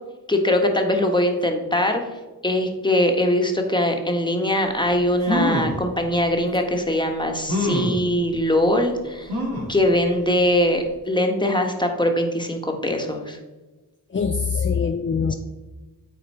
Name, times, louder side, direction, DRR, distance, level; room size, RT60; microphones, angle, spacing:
voice 1, 0.3-2.0 2.4-9.3 9.7-13.4, left 1 dB, 10° left, 3 dB, 1.3 m, -21 dB
sound 1, 4.8-4.9 5.2-5.8 6.5-6.6 7.5-8.0 9.3-9.8 10.3-10.4 10.7-10.8, left 1 dB, 75° right, 2.0 m, -24 dB
voice 2, 14.1-15.3, left 6 dB, 30° left, 7 dB, 0.5 m, -23 dB
9.2 x 3.9 x 4.2 m, 1.2 s
cardioid pair, 45°, 38 cm